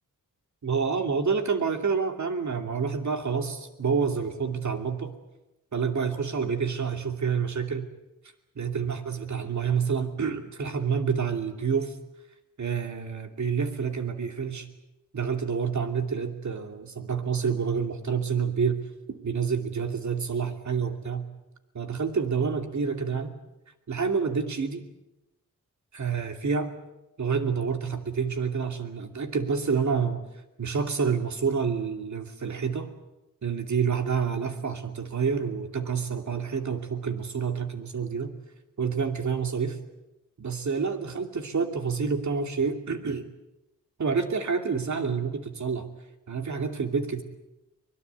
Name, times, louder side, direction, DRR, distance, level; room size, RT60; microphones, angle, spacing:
voice 1, 0.6-5.1 5.7-7.9 8.5-12.0 12.6-14.7 15.1-18.8 19.1-21.3 21.7-23.3 23.9-24.9 25.9-26.7 27.2-30.2 30.6-32.9 33.4-38.3 38.8-39.8 40.4-43.3 44.0-45.9 46.3-47.2, right 6 dB, 60° right, 6 dB, 2.7 m, -28 dB
24.0 x 22.0 x 8.2 m, 0.97 s
wide cardioid pair, 115°, 33 cm